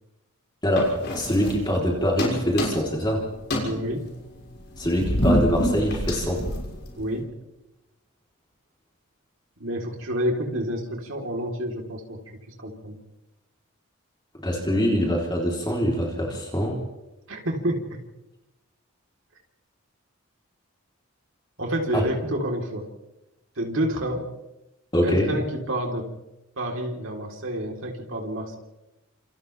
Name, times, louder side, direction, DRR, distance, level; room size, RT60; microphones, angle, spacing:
voice 1, 0.6-3.3 4.8-6.4 14.4-16.8 21.9-22.0 24.9-25.3, equal, 20° left, -2 dB, 3.8 m, -24 dB
sound 1, 0.7-1.9 2.2-3.1 3.4-7.2, equal, 50° left, 6.3 m, -27 dB
voice 2, 3.6-4.0 7.0-7.3 9.6-12.2 12.6-13.0 17.3-18.0 21.6-22.9 23.6-24.2 25.0-26.1 26.6-28.6, equal, 65° right, 1 dB, 4.0 m, -28 dB
30.0 x 28.0 x 3.5 m, 0.98 s
head